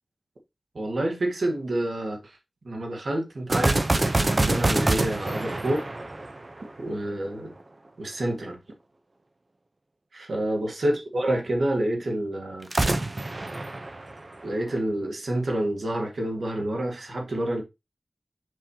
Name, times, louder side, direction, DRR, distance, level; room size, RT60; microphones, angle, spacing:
voice 1, 0.7-2.4 2.6-5.9 6.8-7.5 8.0-8.6 10.1-12.7 14.4-17.6, right 1 dB, 85° right, 2.0 m, -28 dB
sound 1, 3.5-6.9 12.6-14.7, right 2 dB, 45° right, 0.8 m, -25 dB
7.3 x 5.5 x 2.9 m
wide cardioid pair, 75°, 0 cm